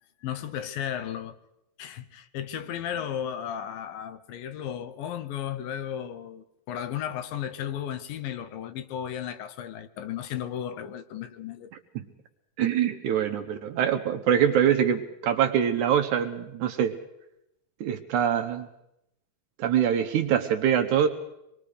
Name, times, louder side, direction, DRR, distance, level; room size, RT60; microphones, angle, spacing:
voice 1, 0.2-1.4 1.8-11.7, left 9 dB, 75° left, 2.6 m, -34 dB
voice 2, 12.6-17.0 17.8-18.7 19.6-21.1, right 9 dB, 70° right, 2.1 m, -24 dB
25.5 x 21.5 x 5.0 m
omnidirectional pair, 4.2 m